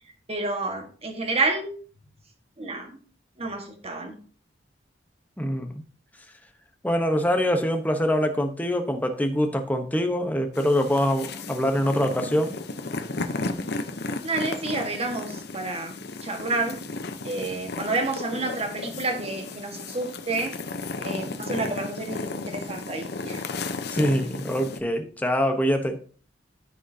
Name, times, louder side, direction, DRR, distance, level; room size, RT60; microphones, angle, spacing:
voice 1, 0.3-1.7 2.6-3.0 3.4-4.1 14.2-16.8 17.2-20.6 21.0-23.4, right 3 dB, 35° right, 4 dB, 1.5 m, -29 dB
voice 2, 5.4-5.8 6.8-12.6 23.9-26.0, equal, 10° left, 5 dB, 0.9 m, -24 dB
sound 1, 10.5-24.8, left 3 dB, 60° left, 0.8 m, -34 dB
14.0 x 5.1 x 2.8 m, 0.42 s
head